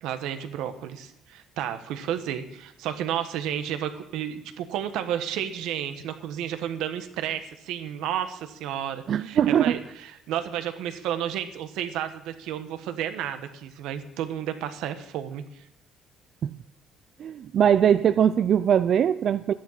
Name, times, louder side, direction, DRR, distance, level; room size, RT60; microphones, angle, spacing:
voice 1, 0.0-15.6, right 10 dB, 85° right, 9 dB, 1.2 m, -32 dB
voice 2, 9.1-9.8 16.4-16.5 17.2-19.5, right 9 dB, 45° right, 12 dB, 0.4 m, -21 dB
12.0 x 10.5 x 5.7 m, 0.83 s
cardioid pair, 155°, 0 cm